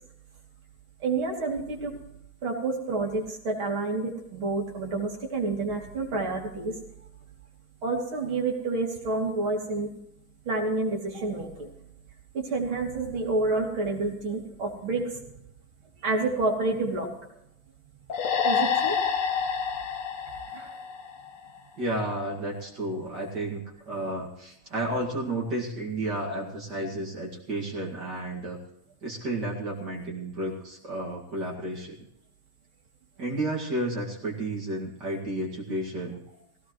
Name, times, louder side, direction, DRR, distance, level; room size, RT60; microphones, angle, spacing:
voice 1, 1.0-2.0 2.4-6.8 7.8-9.9 10.5-11.7 12.3-15.3 16.0-17.1 18.4-19.0 20.5-20.7, right 3 dB, 75° right, 0 dB, 3.7 m, -29 dB
sound 1, 18.1-21.6, left 6 dB, 50° left, 1.0 m, -28 dB
voice 2, 21.8-28.6 29.0-32.0 33.2-36.2, right 1 dB, 55° right, -3 dB, 2.8 m, -32 dB
18.5 x 17.0 x 3.2 m, 0.82 s
omnidirectional pair, 2.3 m